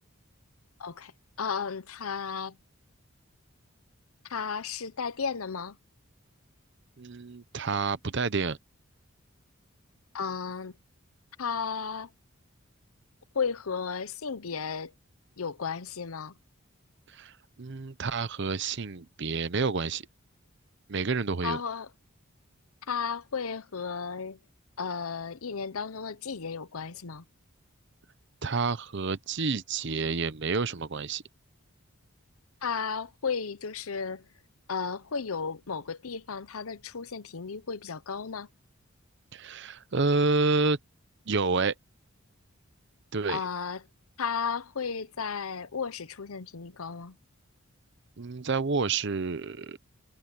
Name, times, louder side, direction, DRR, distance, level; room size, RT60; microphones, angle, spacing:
voice 1, 0.8-1.1 1.4-2.6 4.2-5.8 10.1-10.8 11.4-12.1 13.3-14.9 15.4-16.3 21.4-21.9 22.9-24.4 24.8-27.2 32.6-34.3 34.7-38.5 43.3-43.8 44.2-47.2, left 6 dB, 85° left, 0.9 m, -34 dB
voice 2, 7.0-8.6 17.1-17.3 17.6-20.1 20.9-21.6 28.4-31.2 39.3-40.8 41.3-41.7 43.1-43.4 48.2-49.8, right 4 dB, 55° right, 0.8 m, -29 dB
head